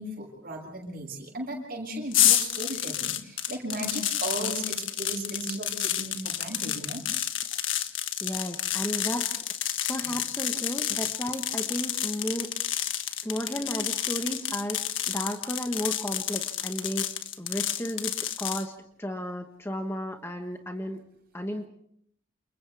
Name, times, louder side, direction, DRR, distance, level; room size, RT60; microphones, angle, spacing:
voice 1, 0.0-7.0 10.0-10.2, right 1 dB, 45° right, 1 dB, 7.8 m, -36 dB
sound 1, 2.1-18.6, left 11 dB, 65° left, 1.6 m, -30 dB
voice 2, 8.2-9.3 9.9-12.5 13.2-14.8 15.1-17.1 17.4-18.7 19.0-21.0 21.3-21.6, equal, 10° left, 4 dB, 1.3 m, -33 dB
29.5 x 29.0 x 3.5 m, 0.69 s
head